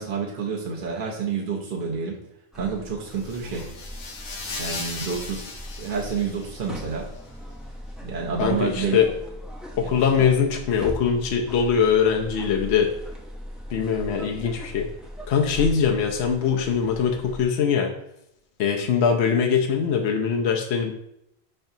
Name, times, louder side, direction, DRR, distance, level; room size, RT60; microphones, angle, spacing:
voice 1, 0.0-2.2 2.5-3.7 4.6-5.5 5.8-7.1 8.0-9.0 9.8-10.3, right 5 dB, 55° right, -2 dB, 0.9 m, -29 dB
sound 1, 2.5-17.4, equal, ahead, 0.4 m, -39 dB
sound 2, 3.1-7.0, left 3 dB, 50° left, 0.7 m, -37 dB
voice 2, 8.4-9.1 9.8-12.9 13.7-14.9 15.3-17.9 18.6-20.9, left 7 dB, 85° left, 1 dB, 0.8 m, -22 dB
5.7 x 3.3 x 2.6 m, 0.80 s
omnidirectional pair, 1.1 m